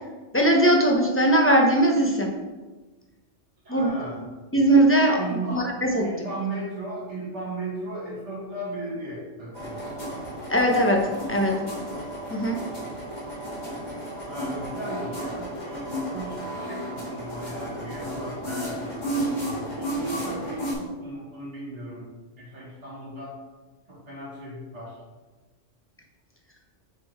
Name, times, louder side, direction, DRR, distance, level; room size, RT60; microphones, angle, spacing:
voice 1, 0.3-2.3 3.7-3.9 4.5-6.1 10.5-11.5 12.3-12.6, right 1 dB, 10° left, 0 dB, 0.7 m, -20 dB
voice 2, 3.6-4.3 5.2-5.6 6.0-9.9 14.3-19.3 19.7-22.1 22.4-23.4 23.9-25.0, right 2 dB, 65° right, -6 dB, 2.6 m, -36 dB
sound 1, 9.5-20.7, right 1 dB, 35° left, 1.9 m, -33 dB
6.6 x 3.8 x 4.6 m, 1.2 s
omnidirectional pair, 1.3 m